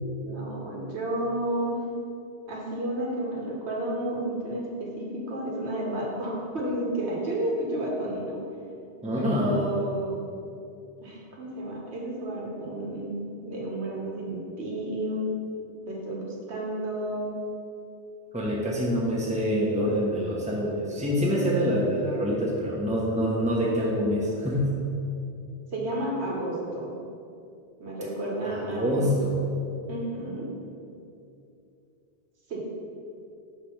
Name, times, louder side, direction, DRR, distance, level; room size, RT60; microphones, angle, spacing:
voice 1, 0.2-1.8 2.5-8.4 9.1-10.1 11.0-15.3 15.9-17.3 25.7-26.9 27.8-29.1 29.9-30.5 32.5-32.6, right 1 dB, 80° right, -3 dB, 1.4 m, -31 dB
voice 2, 9.0-9.7 18.3-24.7 28.4-29.4, equal, 5° right, -5 dB, 0.9 m, -26 dB
5.8 x 3.3 x 5.8 m, 2.6 s
omnidirectional pair, 1.1 m